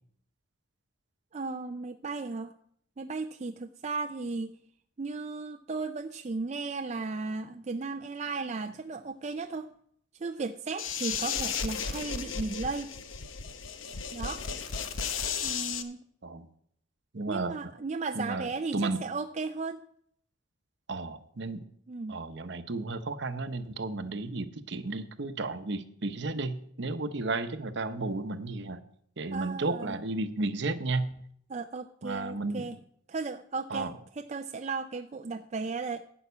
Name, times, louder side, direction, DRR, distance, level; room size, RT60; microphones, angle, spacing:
voice 1, 1.3-2.5 3.0-4.6 5.0-9.7 10.2-12.9 14.1-14.4 15.4-16.0 17.3-19.8 21.9-22.2 29.3-30.0 31.5-32.8 33.1-33.9 34.2-36.0, right 4 dB, 35° right, 7 dB, 0.4 m, -35 dB
sound 1, 10.8-15.8, left 6 dB, 75° left, 0.9 m, -34 dB
voice 2, 17.1-17.7 18.1-19.0 20.9-21.6 22.1-28.8 29.2-31.1 32.0-32.7 33.7-33.9, right 3 dB, 60° right, 10 dB, 0.8 m, -33 dB
11.0 x 5.7 x 8.3 m, 0.67 s
head